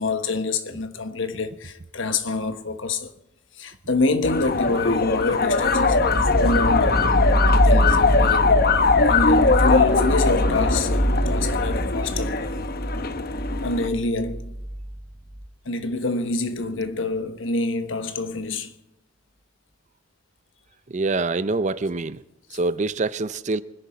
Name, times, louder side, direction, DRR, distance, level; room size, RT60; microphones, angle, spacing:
voice 1, 0.0-3.1 3.6-8.7 9.1-12.3 13.6-14.5 15.6-18.7 22.5-22.6, left 3 dB, 80° left, 1.3 m, -26 dB
London Inside Red Bus, 4.2-13.9, left 4 dB, 50° left, 0.9 m, -21 dB
sound 1, 5.6-15.5, right 1 dB, 20° right, 1.2 m, -25 dB
voice 2, 20.9-22.2 22.5-23.6, right 3 dB, 35° right, 0.5 m, -25 dB
24.0 x 10.5 x 4.3 m
head